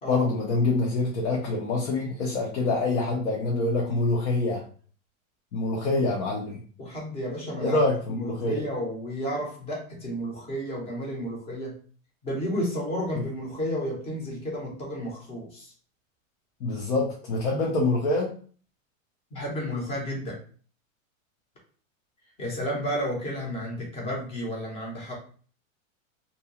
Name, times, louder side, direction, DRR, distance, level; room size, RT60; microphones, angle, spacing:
voice 1, 0.1-4.6 5.5-6.6 7.6-8.6 16.6-18.3, left 2 dB, 65° left, -2 dB, 0.8 m, -25 dB
voice 2, 6.8-7.8 8.1-11.8 12.2-15.7 19.3-20.4 22.4-25.1, equal, 15° left, -2 dB, 0.7 m, -32 dB
2.7 x 2.2 x 2.8 m, 0.43 s
supercardioid pair, 155°, 41 cm